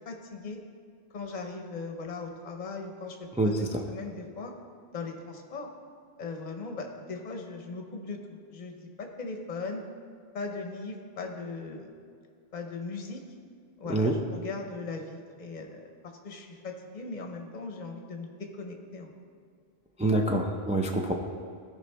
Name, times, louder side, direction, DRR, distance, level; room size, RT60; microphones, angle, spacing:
voice 1, 0.1-0.6 1.1-4.5 4.9-5.7 6.2-9.8 10.3-11.9 12.5-13.2 13.8-19.1, left 3 dB, 45° left, 3 dB, 0.9 m, -39 dB
voice 2, 3.4-3.8 13.8-14.1 20.0-21.1, right 2 dB, 10° right, 1 dB, 0.4 m, -26 dB
14.5 x 5.1 x 3.4 m, 2.3 s
omnidirectional pair, 1.0 m